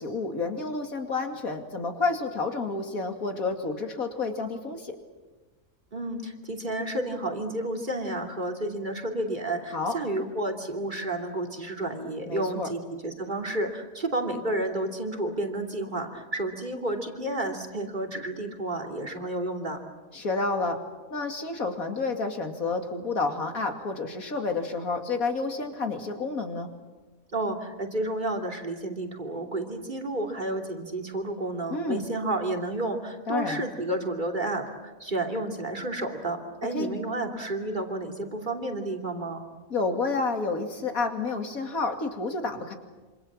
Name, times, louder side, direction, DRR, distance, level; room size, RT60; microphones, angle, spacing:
voice 1, 0.0-4.9 9.7-9.9 12.3-12.7 20.1-20.8 21.1-26.7 31.7-32.0 33.3-33.6 36.7-36.9 39.7-42.8, left 3 dB, 80° left, 5 dB, 3.0 m, -30 dB
voice 2, 5.9-19.8 27.3-39.5, right 1 dB, 35° right, 3 dB, 3.1 m, -31 dB
26.5 x 26.5 x 7.5 m, 1.2 s
omnidirectional pair, 1.5 m